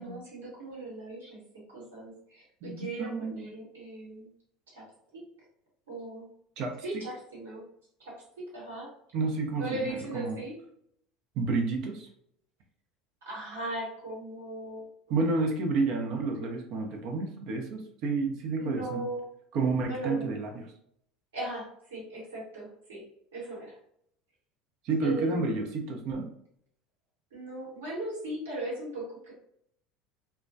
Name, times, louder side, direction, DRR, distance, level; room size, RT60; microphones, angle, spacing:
voice 1, 0.0-1.4 1.7-4.3 4.7-4.8 5.1-5.2 5.9-6.2 6.8-7.6 8.0-8.9 9.6-10.6 13.2-15.2 18.6-19.2 19.9-20.3 21.3-23.0 23.3-23.8 25.0-25.6 27.3-29.3, right 1 dB, 80° right, -5 dB, 1.1 m, -38 dB
voice 2, 2.6-3.5 6.6-7.0 9.1-10.4 11.3-12.1 15.1-19.1 19.5-20.7 24.8-26.3, right 3 dB, 55° right, 2 dB, 0.5 m, -30 dB
2.2 x 2.1 x 2.6 m, 0.69 s
hypercardioid pair, 70°, 0 cm